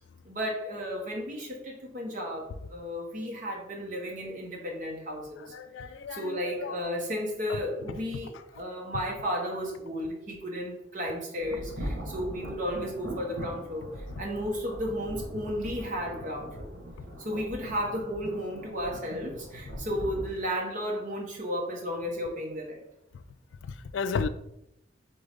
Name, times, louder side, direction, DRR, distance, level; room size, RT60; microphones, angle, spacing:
voice 1, 0.2-5.5 6.1-16.7 17.2-22.8, equal, 45° right, 1.1 m, -34 dB
voice 2, 5.5-6.8 23.6-24.3, left 5 dB, 80° left, 0.3 m, -33 dB
sound 1, 11.4-20.3, right 1 dB, 85° right, 1.1 m, -40 dB
3.9 x 3.8 x 3.5 m
head